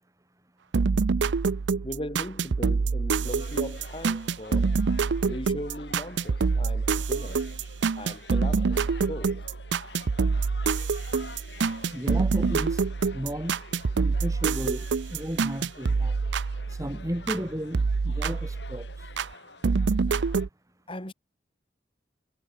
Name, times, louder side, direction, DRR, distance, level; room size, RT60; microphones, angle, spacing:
sound 1, 0.7-17.4 17.7-19.3 19.6-20.5, right 4 dB, 80° right, 0.5 m, -26 dB
voice 1, 1.8-4.8 5.2-7.5 8.0-9.5 20.9-21.1, left 1 dB, 30° left, 5.8 m, -38 dB
sound 2, 3.2-20.5, left 3 dB, 70° left, 6.0 m, -49 dB
voice 2, 11.9-12.8 13.1-13.5 13.9-16.2 16.7-19.1, equal, 20° right, 2.6 m, -34 dB
head